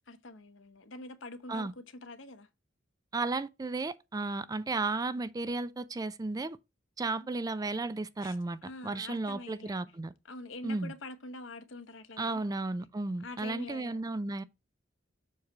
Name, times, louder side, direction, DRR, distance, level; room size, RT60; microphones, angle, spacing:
voice 1, 0.1-2.5 7.2-7.3 8.2-8.4 8.6-9.9 10.2-12.4 13.2-14.0, left 2 dB, 85° left, 1.0 m, -45 dB
voice 2, 3.1-6.6 7.0-10.1 10.6-10.9 12.2-14.4, right 3 dB, 20° right, 0.3 m, -34 dB
7.2 x 3.1 x 5.9 m
head